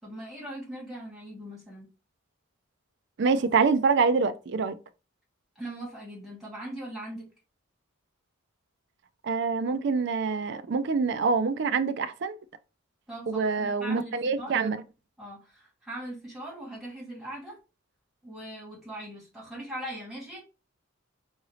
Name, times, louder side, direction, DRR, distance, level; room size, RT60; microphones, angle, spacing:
voice 1, 0.0-1.9 5.6-7.3 13.1-14.6 15.2-17.6 18.2-20.4, right 1 dB, ahead, 2.1 m, -40 dB
voice 2, 3.2-4.8 9.2-12.4 13.3-14.8, right 4 dB, 55° right, 0.4 m, -25 dB
4.8 x 2.6 x 3.1 m
head